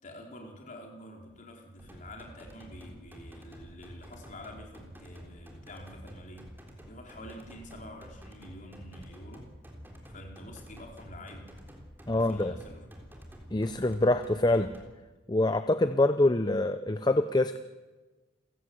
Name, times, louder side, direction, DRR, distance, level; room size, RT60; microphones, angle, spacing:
voice 1, 0.0-6.5 6.8-9.5 10.1-11.5 12.1-12.9, left 1 dB, 40° left, 1 dB, 4.1 m, -47 dB
sound 1, 1.8-14.8, equal, 10° right, 3.6 m, -49 dB
voice 2, 12.1-12.6 13.5-14.7 15.3-17.6, left 2 dB, 20° left, 9 dB, 0.7 m, -25 dB
29.5 x 15.5 x 8.0 m, 1.2 s
head